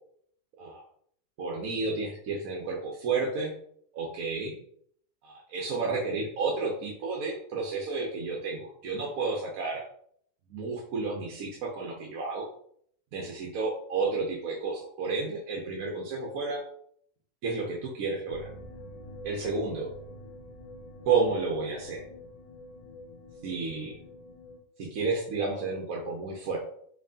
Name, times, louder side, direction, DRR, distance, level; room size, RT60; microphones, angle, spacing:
voice 1, 1.4-3.5 3.9-4.6 5.2-9.8 10.5-12.5 13.1-16.6 17.4-18.4 19.2-19.9 21.0-22.0 23.4-23.9 24.8-26.6, right 4 dB, 70° right, -2 dB, 1.1 m, -31 dB
sound 1, 18.3-24.6, left 1 dB, 60° left, 0.4 m, -47 dB
4.4 x 3.0 x 2.7 m, 0.65 s
omnidirectional pair, 1.5 m